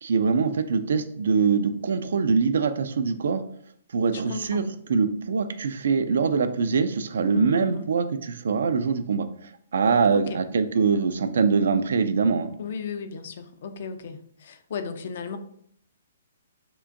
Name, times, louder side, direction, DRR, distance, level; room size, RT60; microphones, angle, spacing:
voice 1, 0.0-3.4 3.9-4.6 4.9-9.3 9.7-12.5, right 5 dB, 65° right, 10 dB, 0.3 m, -23 dB
voice 2, 4.1-4.7 7.3-7.9 10.1-10.4 12.6-15.4, left 6 dB, 55° left, 9 dB, 0.4 m, -35 dB
3.6 x 2.4 x 2.5 m, 0.65 s
figure-of-eight pair, 125°, 0 cm